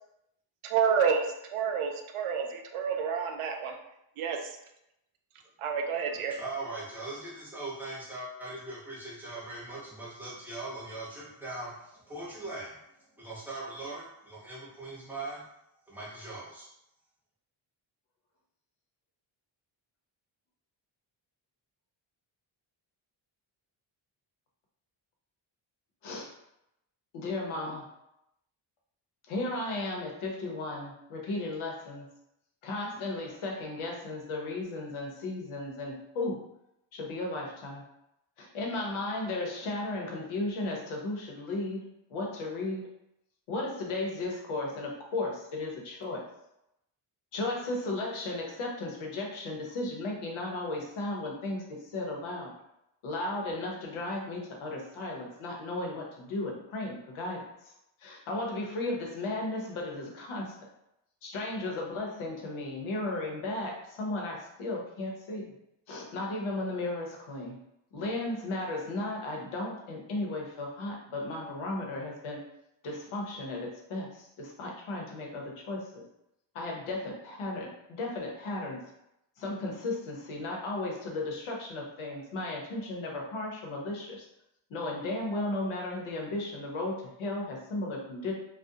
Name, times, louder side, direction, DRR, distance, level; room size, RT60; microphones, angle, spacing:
voice 1, 0.6-3.8 4.2-4.6 5.6-6.4, right 6 dB, 85° right, 4 dB, 0.5 m, -29 dB
voice 2, 6.3-12.8 13.1-15.5 15.9-16.7, right 2 dB, 5° right, -8 dB, 0.7 m, -40 dB
voice 3, 27.1-27.8 29.3-32.1 32.6-36.4 36.9-37.8 38.4-41.8 42.1-42.9 43.5-46.2 47.3-52.5 53.0-57.7 58.0-60.7 61.2-65.5 65.9-67.6 67.9-72.4 72.8-76.0 76.5-78.8 79.4-84.3 84.7-88.3, left 2 dB, 80° left, 0 dB, 0.8 m, -35 dB
2.3 x 2.1 x 2.7 m, 0.83 s
wide cardioid pair, 135°, 49 cm